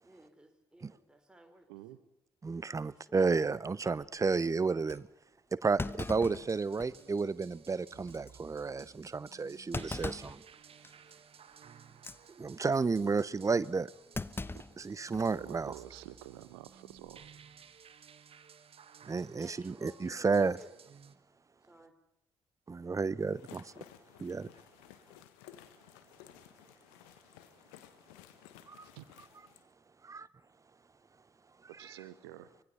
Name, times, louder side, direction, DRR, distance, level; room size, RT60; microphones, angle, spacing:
voice 1, 0.0-1.7 3.0-3.2 19.4-20.9 21.6-21.9, right 1 dB, 5° right, 4.0 m, -57 dB
voice 2, 1.7-2.0 15.3-17.3 28.9-29.0 31.8-32.5, right 15 dB, 70° right, 1.0 m, -49 dB
voice 3, 2.4-5.1 5.5-10.4 12.4-13.9 14.8-15.7 19.1-20.6 22.7-23.8 24.2-24.5 28.7-28.9 30.0-30.3, right 4 dB, 25° right, 0.8 m, -32 dB
Thump thud, 4.3-4.4 4.9-5.0 5.8-7.1 7.5-7.6 8.1-8.3 9.7-10.4 10.8-11.1 11.9-12.2 14.1-15.4 15.7-15.8 16.9-17.2, left 3 dB, 15° left, 0.8 m, -40 dB
sound 1, 6.4-21.2, right 7 dB, 45° right, 1.3 m, -57 dB
sound 2, 23.2-29.6, left 12 dB, 70° left, 1.3 m, -56 dB
24.5 x 21.5 x 5.7 m
figure-of-eight pair, 40°, 14 cm